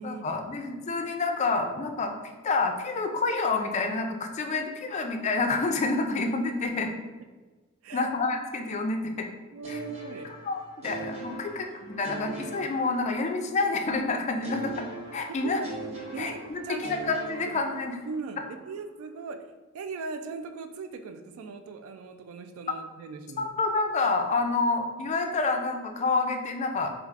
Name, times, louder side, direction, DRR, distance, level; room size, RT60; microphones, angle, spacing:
voice 1, 0.0-2.2 2.4-6.9 7.9-9.3 9.7-9.8 10.4-14.7 15.1-15.6 16.2-18.0 23.4-26.9, left 3 dB, 35° left, 4 dB, 0.3 m, -28 dB
voice 2, 4.5-4.9 7.8-8.1 9.5-10.3 14.5-14.6 15.4-15.7 16.1-16.9 18.1-19.4 19.7-23.5, right 4 dB, 75° right, 8 dB, 0.3 m, -39 dB
sound 1, 9.6-13.6 14.4-18.3, right 3 dB, 30° right, 0.7 m, -41 dB
4.5 x 2.4 x 2.4 m, 1.3 s
head